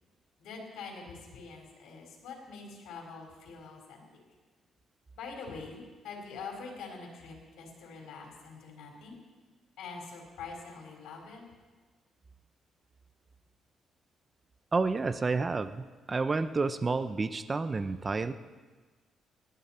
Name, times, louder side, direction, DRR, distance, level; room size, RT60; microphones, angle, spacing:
voice 1, 0.4-4.0 5.2-9.2 9.8-11.4, left 4 dB, 85° left, 0 dB, 4.4 m, -44 dB
voice 2, 14.7-18.3, right 3 dB, 30° right, 12 dB, 0.7 m, -30 dB
19.0 x 13.0 x 4.4 m, 1.3 s
cardioid pair, 90°, 0 cm